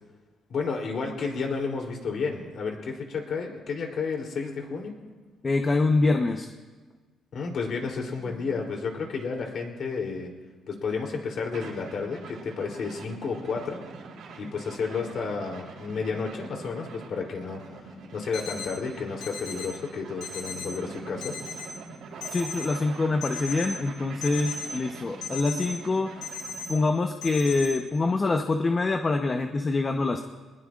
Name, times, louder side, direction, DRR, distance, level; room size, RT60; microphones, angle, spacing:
voice 1, 0.5-4.9 7.3-10.3 10.7-13.8 14.4-21.3, left 5 dB, 55° left, 1 dB, 3.2 m, -31 dB
voice 2, 5.4-6.5 22.3-26.1 26.7-30.2, left 3 dB, 25° left, 5 dB, 0.9 m, -25 dB
sound 1, 11.5-26.9, right 4 dB, 80° right, 3.7 m, -44 dB
sound 2, 18.3-18.7 19.2-19.7 20.2-20.7 21.2-21.7 22.2-22.7 23.2-23.7 24.2-24.7 25.2-25.7 26.2-26.7 27.2-27.7, left 5 dB, 80° left, 4.3 m, -35 dB
24.0 x 20.0 x 2.5 m, 1.3 s
cardioid pair, 125°, 0 cm